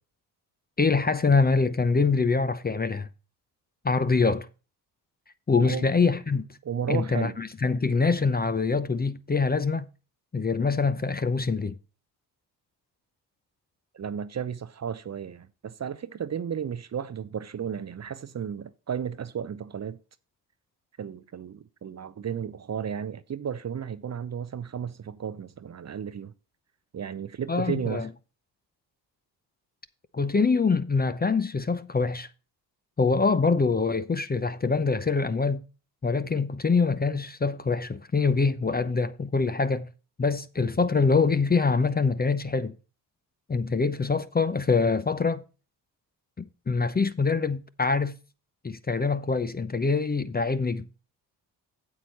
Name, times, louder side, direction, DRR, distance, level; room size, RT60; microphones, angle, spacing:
voice 1, 0.8-3.1 3.8-4.5 5.5-6.4 6.9-9.9 10.3-11.7 27.5-28.1 30.1-32.3 33.0-35.6 36.0-39.9 40.2-42.7 43.5-45.4 46.4-48.2 48.6-50.9, left 4 dB, 20° left, 0.7 m, -24 dB
voice 2, 6.6-7.4 13.9-20.0 21.0-26.3 26.9-28.1, right 8 dB, 35° right, 0.7 m, -34 dB
8.6 x 7.8 x 4.2 m
hypercardioid pair, 45°, 49 cm